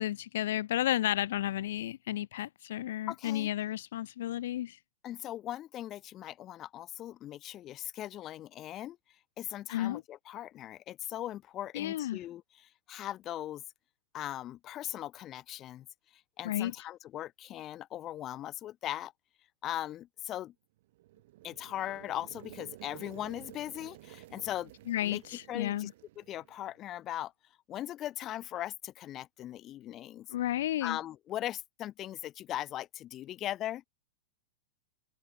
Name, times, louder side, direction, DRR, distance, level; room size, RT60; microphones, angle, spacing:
voice 1, 0.0-4.8 9.7-10.0 11.7-12.2 16.4-16.7 24.9-25.9 30.3-31.0, left 13 dB, 65° left, 0.4 m, -32 dB
voice 2, 3.1-3.5 5.0-9.0 9.4-13.6 14.1-15.9 16.4-19.1 19.6-20.5 21.4-24.7 25.0-25.2 25.5-25.9 26.2-27.3 27.7-30.3 30.8-33.9, left 13 dB, 25° left, 3.0 m, -39 dB
sound 1, 20.8-26.9, right 17 dB, 55° right, 7.5 m, -52 dB
open air
supercardioid pair, 150°, 0 cm